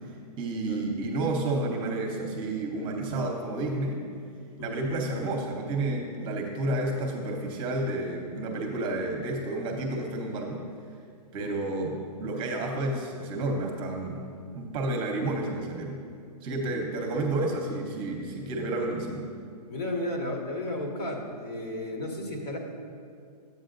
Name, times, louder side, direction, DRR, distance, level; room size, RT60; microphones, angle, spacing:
voice 1, 0.4-4.0 4.6-10.6 11.3-14.2 14.5-16.0 16.4-19.3, right 2 dB, 25° right, 1 dB, 0.9 m, -30 dB
voice 2, 19.7-22.6, left 1 dB, 70° left, 0 dB, 1.8 m, -33 dB
11.0 x 8.2 x 2.6 m, 2.3 s
hypercardioid pair, 140°, 21 cm